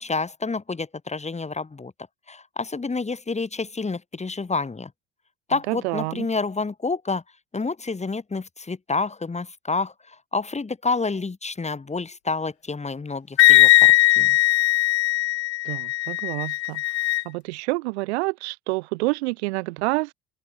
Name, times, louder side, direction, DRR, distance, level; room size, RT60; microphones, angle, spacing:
voice 1, 0.0-1.9 2.3-4.9 5.5-7.2 7.5-14.4, left 4 dB, 20° left, 3.0 m, -29 dB
voice 2, 5.7-6.3 15.6-16.8 17.3-20.1, right 24 dB, 75° right, 3.6 m, -28 dB
Wind instrument woodwind instrument, 13.4-17.2, left 18 dB, 80° left, 2.4 m, -18 dB
open air
hypercardioid pair, 65°, 33 cm